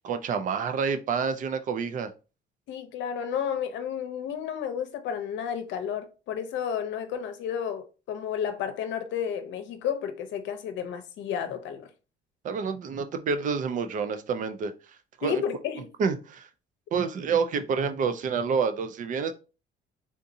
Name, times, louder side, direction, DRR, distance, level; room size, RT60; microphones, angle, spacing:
voice 1, 0.0-2.1 12.4-14.7 15.2-15.4 16.0-16.5 16.9-19.3, right 5 dB, 45° right, 0.4 m, -28 dB
voice 2, 2.7-11.9 15.2-15.9, left 8 dB, 75° left, 0.7 m, -32 dB
3.6 x 2.7 x 2.6 m
cardioid pair, 135°, 19 cm